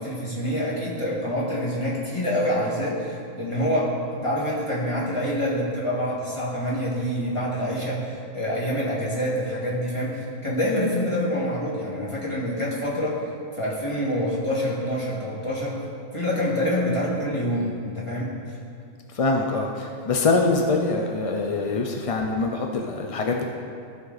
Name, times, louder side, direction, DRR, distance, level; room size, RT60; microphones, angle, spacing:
voice 1, 0.0-10.1 10.4-13.2 13.6-15.7 16.1-18.3, equal, 25° left, -6 dB, 1.8 m, -26 dB
voice 2, 19.1-23.4, left 3 dB, 50° left, 2 dB, 0.4 m, -24 dB
14.0 x 5.3 x 4.0 m, 2.4 s
omnidirectional pair, 1.3 m